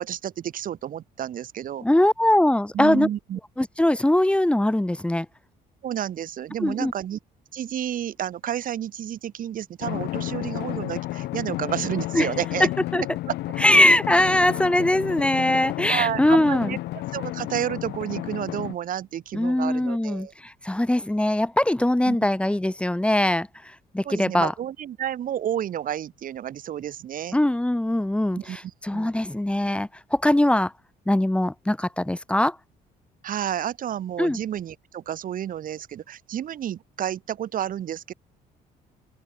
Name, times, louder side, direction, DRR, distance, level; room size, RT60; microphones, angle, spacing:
voice 1, 0.0-1.9 2.7-3.4 5.8-7.2 7.5-12.7 13.3-13.4 15.9-16.8 17.1-20.3 22.1-22.2 24.0-27.4 28.4-28.6 28.9-29.1 33.2-38.1, right 10 dB, 55° right, 2.3 m, -30 dB
voice 2, 1.8-3.1 3.6-5.3 6.6-6.9 12.1-12.3 12.9-13.0 13.6-16.8 19.3-23.5 23.9-24.5 27.3-30.7 31.1-32.6 34.2-34.4, left 1 dB, 5° left, 2.3 m, -21 dB
Drum, 9.8-18.7, left 17 dB, 80° left, 1.6 m, -32 dB
open air
cardioid pair, 110°, 17 cm